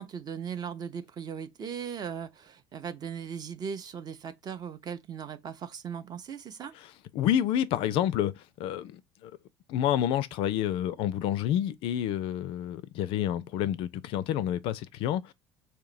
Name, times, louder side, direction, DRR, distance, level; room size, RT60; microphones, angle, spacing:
voice 1, 0.0-6.7, right 7 dB, 35° right, 0.6 m, -38 dB
voice 2, 6.8-9.3 9.7-15.3, left 11 dB, 45° left, 0.3 m, -29 dB
4.4 x 2.8 x 2.5 m
figure-of-eight pair, 60°, 12 cm